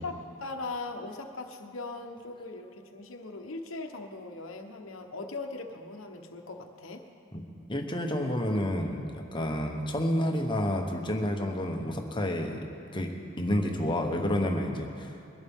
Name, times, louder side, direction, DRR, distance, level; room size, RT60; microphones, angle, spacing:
voice 1, 0.0-7.0, left 3 dB, 75° left, 5 dB, 1.1 m, -39 dB
voice 2, 7.7-12.6 12.9-15.1, left 1 dB, 25° left, 2 dB, 1.1 m, -29 dB
22.0 x 11.5 x 3.6 m, 2.6 s
head